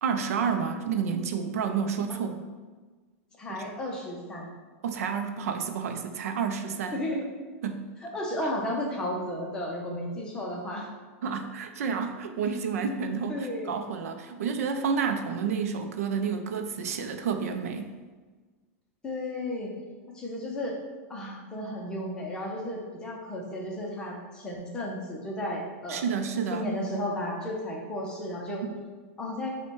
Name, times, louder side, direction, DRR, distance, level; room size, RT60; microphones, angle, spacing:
voice 1, 0.0-2.4 3.5-3.6 4.8-7.0 7.6-7.9 11.2-17.9 25.9-26.7, right 6 dB, 85° right, 7 dB, 0.5 m, -30 dB
voice 2, 3.4-4.5 6.9-7.2 8.0-10.9 13.3-13.8 19.0-19.7 20.1-20.8 21.1-26.0 26.5-28.6 29.2-29.5, left 1 dB, 10° left, -2 dB, 0.5 m, -33 dB
5.3 x 2.2 x 4.5 m, 1.4 s
supercardioid pair, 175°, 8 cm